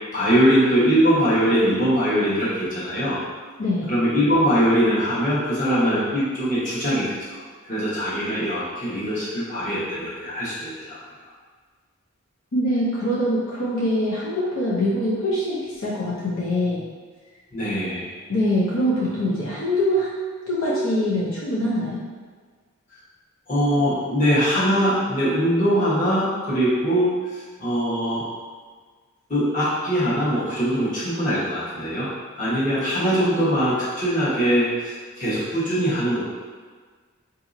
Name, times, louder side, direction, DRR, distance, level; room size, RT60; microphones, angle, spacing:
voice 1, 0.1-3.2 3.9-7.4 7.7-11.0 17.5-18.1 20.7-20.8 23.5-28.2 29.3-32.1 32.4-36.2, equal, 40° left, -10 dB, 1.1 m, -22 dB
voice 2, 12.5-16.8 18.3-22.0, left 1 dB, 75° left, -7 dB, 0.6 m, -24 dB
3.9 x 2.7 x 2.5 m, 1.5 s
head